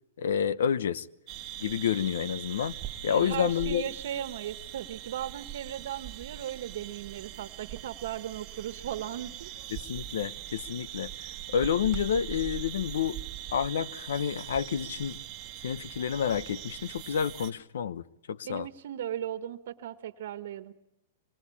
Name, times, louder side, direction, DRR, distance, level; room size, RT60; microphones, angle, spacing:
voice 1, 0.2-1.1 1.6-2.7 3.0-3.8 9.7-11.1 11.5-13.2 13.5-15.2 15.6-18.7, left 8 dB, 80° left, 0.9 m, -29 dB
sound 1, 1.3-17.5, right 13 dB, 25° right, 1.4 m, -41 dB
voice 2, 3.1-9.5 18.4-20.7, right 11 dB, 65° right, 1.3 m, -37 dB
25.5 x 21.0 x 8.6 m
supercardioid pair, 165°, 0 cm